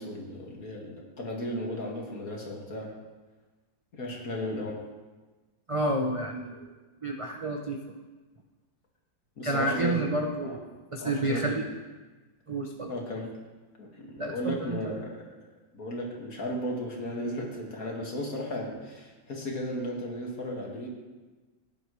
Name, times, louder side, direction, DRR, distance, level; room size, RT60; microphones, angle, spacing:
voice 1, 0.0-2.9 3.9-4.8 9.4-10.1 10.4-10.6 11.0-11.6 12.9-13.3 13.8-15.2 15.7-20.9, left 1 dB, 55° left, -1 dB, 2.4 m, -35 dB
voice 2, 5.7-6.7 7.0-7.8 9.4-11.7 12.5-12.9 14.2-15.0, right 1 dB, 40° right, 1 dB, 0.4 m, -30 dB
16.0 x 10.0 x 3.2 m, 1.3 s
omnidirectional pair, 1.8 m